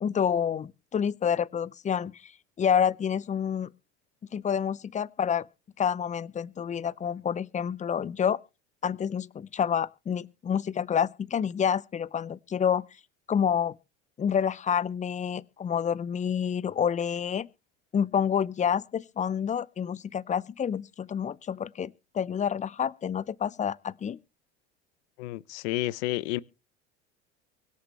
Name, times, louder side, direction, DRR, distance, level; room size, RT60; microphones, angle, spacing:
voice 1, 0.0-2.3 2.6-3.7 4.3-5.5 5.8-8.4 8.8-12.8 13.3-13.8 14.2-17.5 17.9-24.2, left 8 dB, 20° left, 0.6 m, -28 dB
voice 2, 25.2-26.4, left 18 dB, 65° left, 0.9 m, -30 dB
24.0 x 8.4 x 3.3 m
hypercardioid pair, 80°, 36 cm